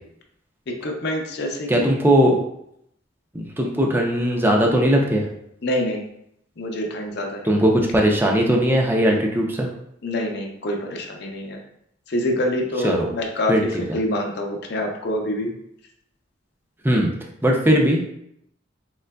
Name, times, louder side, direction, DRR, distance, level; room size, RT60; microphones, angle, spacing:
voice 1, 0.8-1.7 5.6-6.0 6.6-7.5 10.0-11.6 12.1-13.7 13.9-15.5, left 1 dB, 60° left, 1 dB, 0.6 m, -26 dB
voice 2, 1.7-2.4 3.3-5.3 7.4-9.7 12.8-13.1 13.5-14.0 16.8-17.1 17.4-18.0, equal, 10° right, 0 dB, 0.5 m, -19 dB
3.8 x 3.2 x 2.2 m, 0.74 s
head